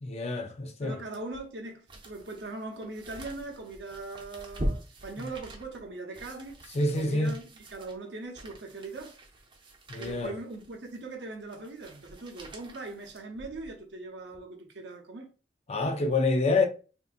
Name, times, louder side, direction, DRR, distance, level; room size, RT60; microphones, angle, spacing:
voice 1, 0.0-1.0 5.2-5.3 6.7-7.3 9.9-10.3 15.7-16.7, left 2 dB, 35° left, 0.5 m, -27 dB
voice 2, 0.8-7.4 7.7-9.2 10.0-15.3, right 2 dB, 75° right, 0.8 m, -40 dB
sound 1, 1.1-13.8 14.3-14.4, right 1 dB, 30° right, 0.7 m, -42 dB
3.7 x 2.6 x 2.4 m
head